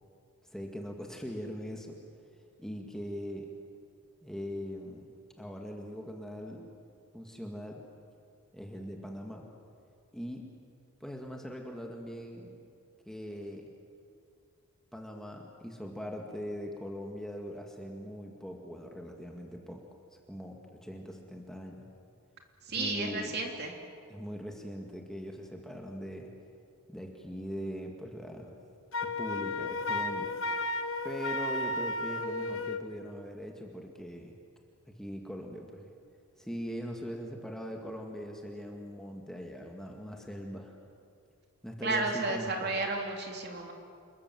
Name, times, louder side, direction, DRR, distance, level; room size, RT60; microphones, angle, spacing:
voice 1, 0.5-2.0 2.6-3.5 4.2-5.0 5.4-6.7 7.1-7.8 8.5-9.5 10.1-10.4 11.0-12.6 13.1-13.7 14.9-19.8 20.3-21.9 22.7-23.4 24.1-26.3 26.9-28.5 29.0-30.3 31.0-34.4 34.9-35.9 36.4-40.8 41.6-42.7, equal, ahead, 1 dB, 2.0 m, -41 dB
voice 2, 22.7-23.7 41.8-43.7, right 2 dB, 50° right, 2 dB, 3.2 m, -32 dB
Wind instrument woodwind instrument, 28.9-32.9, left 2 dB, 65° left, 1.1 m, -33 dB
28.0 x 22.0 x 7.7 m, 2.3 s
head